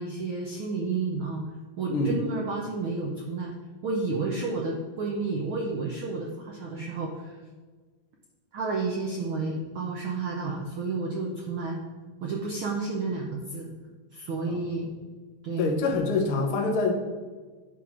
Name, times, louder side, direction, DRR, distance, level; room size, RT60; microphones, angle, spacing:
voice 1, 0.0-1.4 1.8-3.5 3.8-7.4 8.5-11.8 12.2-13.7 14.1-14.9 15.4-15.7, right 3 dB, 65° right, -1 dB, 1.3 m, -31 dB
voice 2, 1.9-2.2 14.5-14.6 15.6-16.9, left 3 dB, 60° left, 2 dB, 1.5 m, -25 dB
10.5 x 3.8 x 6.2 m, 1.4 s
omnidirectional pair, 3.4 m